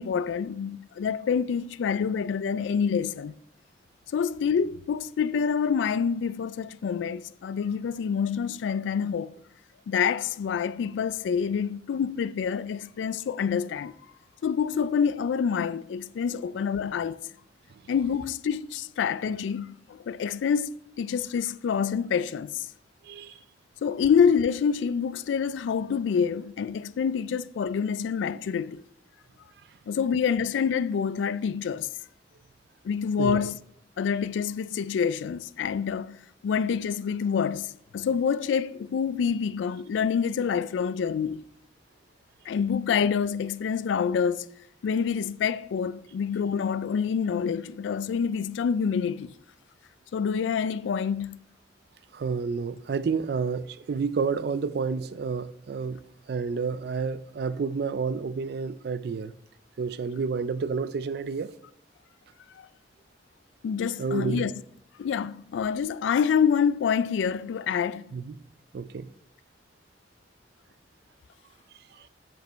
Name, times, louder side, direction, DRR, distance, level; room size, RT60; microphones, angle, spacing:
voice 1, 0.0-3.3 4.1-9.3 9.9-13.9 14.4-17.2 17.9-20.7 21.0-22.7 23.8-28.8 29.9-31.9 32.8-33.5 34.0-36.2 36.4-41.4 42.5-44.5 44.8-49.3 50.1-51.4 62.6-62.7 63.6-64.5 65.0-68.0, left 7 dB, 80° left, 0.3 m, -27 dB
voice 2, 23.0-23.4 33.2-33.5 52.1-56.0 56.3-59.3 59.8-61.5 64.0-64.5 68.1-68.4 68.7-69.1 71.9-72.1, right 5 dB, 60° right, 0.4 m, -30 dB
7.8 x 5.2 x 4.5 m
head